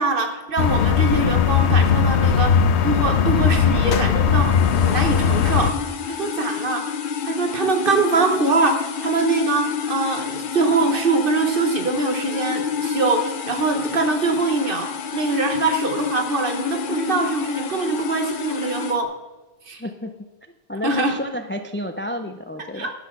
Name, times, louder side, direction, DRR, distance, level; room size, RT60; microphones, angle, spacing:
voice 1, 0.0-5.7 6.1-6.8 7.3-19.1 19.7-19.8 20.8-21.1 22.7-22.9, right 3 dB, 55° right, 5 dB, 1.4 m, -23 dB
sound 1, 0.6-5.7, left 7 dB, 75° left, 1.0 m, -18 dB
sound 2, 4.3-19.0, left 7 dB, 55° left, 0.8 m, -29 dB
voice 2, 19.8-20.1 20.7-22.9, equal, 20° left, 7 dB, 0.3 m, -30 dB
11.0 x 6.0 x 6.7 m, 1.1 s
omnidirectional pair, 1.1 m